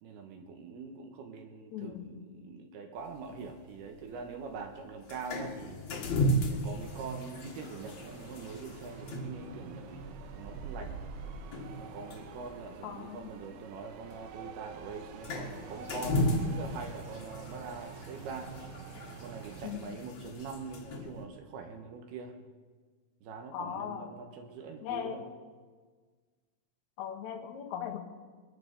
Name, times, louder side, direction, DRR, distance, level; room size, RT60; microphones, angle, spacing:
voice 1, 0.0-5.8 6.5-11.0 11.7-18.5 19.2-22.3 23.2-25.2, right 4 dB, 70° right, 4 dB, 2.7 m, -43 dB
voice 2, 1.7-2.2 12.8-13.3 19.6-19.9 23.5-24.1 24.8-25.3 27.0-28.0, left 9 dB, 80° left, 2 dB, 1.6 m, -38 dB
sound 1, 3.0-21.2, equal, 60° left, 1.9 m, -37 dB
sound 2, 6.8-19.7, right 7 dB, 85° right, 3.3 m, -48 dB
22.5 x 12.0 x 5.3 m, 1.5 s
omnidirectional pair, 5.5 m